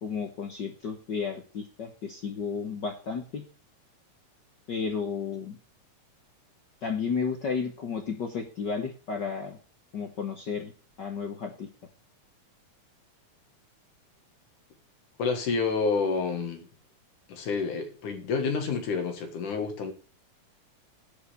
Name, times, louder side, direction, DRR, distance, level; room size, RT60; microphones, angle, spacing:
voice 1, 0.0-3.4 4.7-5.6 6.8-9.6 9.9-10.7 11.0-11.7, left 5 dB, 55° left, 1.2 m, -32 dB
voice 2, 15.2-16.7 17.3-19.9, left 4 dB, 85° left, 3.2 m, -29 dB
11.0 x 5.3 x 8.1 m
omnidirectional pair, 3.4 m